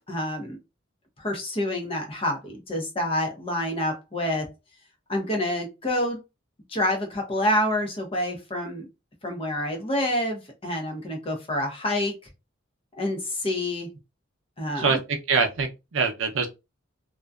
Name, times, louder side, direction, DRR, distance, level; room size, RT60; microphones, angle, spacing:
voice 1, 0.1-0.6 1.2-4.5 5.1-6.2 6.7-8.9 9.2-12.1 13.0-13.9 14.6-15.0, left 1 dB, 30° left, 0.6 m, -27 dB
voice 2, 14.8-16.5, right 5 dB, 80° right, 0.5 m, -24 dB
2.5 x 2.2 x 2.3 m
head